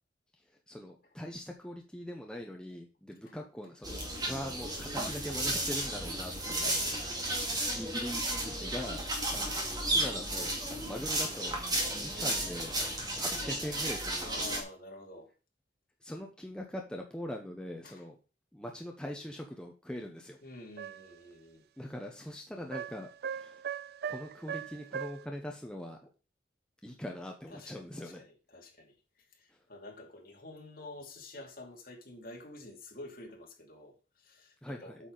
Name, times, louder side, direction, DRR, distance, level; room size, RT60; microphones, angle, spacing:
voice 1, 0.7-4.0 4.3-6.8 7.7-9.0 9.3-11.6 12.0-12.7 13.2-14.5 16.0-18.2 18.5-20.4 21.8-23.6 24.1-26.0 26.8-28.2 34.6-35.0, left 1 dB, 5° left, 0.8 m, -42 dB
sound 1, 3.8-14.6, right 1 dB, 25° right, 2.1 m, -33 dB
voice 2, 6.5-7.2 10.8-11.0 11.8-12.0 14.2-15.3 17.8-18.0 20.4-21.7 27.5-35.1, left 2 dB, 55° left, 2.5 m, -49 dB
sound 2, 20.8-21.2 22.7-25.3, right 8 dB, 60° right, 0.3 m, -39 dB
8.4 x 6.9 x 3.9 m
head